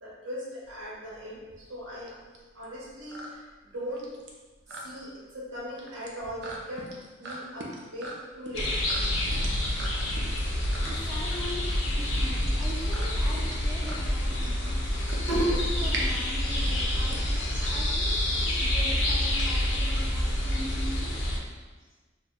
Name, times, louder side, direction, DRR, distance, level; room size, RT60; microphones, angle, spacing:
voice 1, 0.0-2.2 2.5-4.1 4.8-6.9 7.2-8.7 15.3-15.5, equal, 85° right, -6 dB, 1.0 m, -37 dB
sound 1, 0.6-18.4, right 2 dB, 65° right, 0.5 m, -42 dB
sound 2, 8.5-21.4, left 1 dB, 80° left, 0.6 m, -27 dB
voice 2, 10.8-14.8 15.2-21.1, left 1 dB, 5° right, -7 dB, 0.5 m, -41 dB
2.4 x 2.1 x 3.5 m, 1.3 s
head